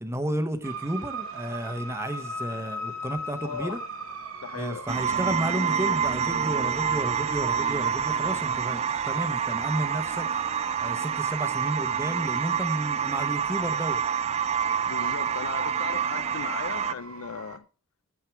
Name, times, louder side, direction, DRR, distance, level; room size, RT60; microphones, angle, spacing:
voice 1, 0.0-3.8 4.5-10.3 10.8-14.0, right 1 dB, 10° right, 1.0 m, -32 dB
sound 1, 0.6-17.6, right 2 dB, 75° right, 1.2 m, -40 dB
voice 2, 3.4-3.8 4.4-4.9 14.9-17.7, left 6 dB, 80° left, 0.5 m, -37 dB
sound 2, 4.9-16.9, right 7 dB, 30° right, 0.3 m, -27 dB
9.1 x 7.5 x 4.6 m
head